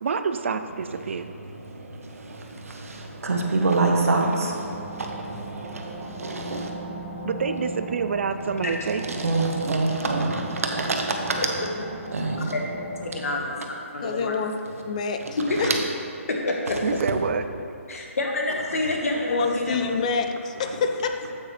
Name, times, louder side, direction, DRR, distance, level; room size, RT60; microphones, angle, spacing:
voice 1, 0.0-1.3 7.2-9.3 16.8-17.4, right 5 dB, 55° right, 10 dB, 0.5 m, -27 dB
voice 2, 3.3-4.3 9.2-10.3 12.1-12.3 15.6-15.7, right 3 dB, 75° right, 2 dB, 1.3 m, -22 dB
sound 1, 4.4-13.3, right 1 dB, ahead, 2.2 m, -38 dB
voice 3, 11.4-11.7 12.5-12.6 13.0-14.4 15.4-15.6 16.3-16.8 17.9-20.1, left 2 dB, 80° left, 0 dB, 1.7 m, -28 dB
voice 4, 14.0-14.6 14.8-15.2 15.6-15.7 19.3-21.3, left 5 dB, 30° left, 7 dB, 0.4 m, -26 dB
9.0 x 8.4 x 3.4 m, 2.6 s
hypercardioid pair, 160°, 8 cm